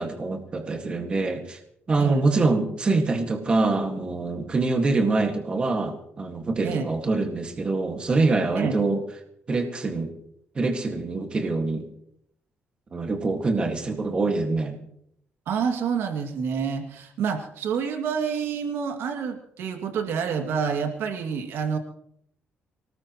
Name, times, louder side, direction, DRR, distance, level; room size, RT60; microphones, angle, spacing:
voice 1, 0.0-1.6 1.9-9.0 9.5-10.1 10.6-11.9 12.9-14.8, right 3 dB, 25° right, 3 dB, 1.9 m, -25 dB
voice 2, 15.5-21.8, right 6 dB, 85° right, 3 dB, 2.4 m, -28 dB
24.5 x 19.5 x 3.1 m, 0.71 s
cardioid pair, 175°, 4 cm